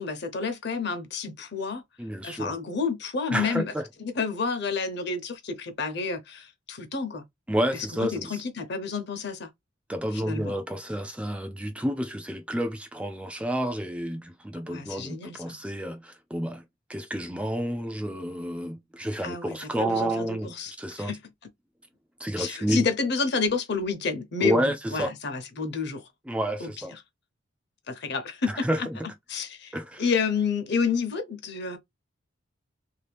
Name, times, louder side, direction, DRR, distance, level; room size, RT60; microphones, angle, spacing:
voice 1, 0.0-1.8 2.2-3.7 4.0-7.2 7.9-9.5 10.1-10.5 14.6-15.6 19.2-21.2 22.4-26.1 26.6-26.7 27.9-28.9 29.3-31.8, left 5 dB, 55° left, 0.9 m, -30 dB
voice 2, 2.0-2.6 3.3-3.8 7.5-8.4 9.9-16.6 16.9-21.1 22.2-22.9 24.4-25.1 26.3-26.9 28.5-29.0 29.7-30.0, right 1 dB, 5° right, 0.3 m, -30 dB
3.1 x 2.8 x 3.4 m
head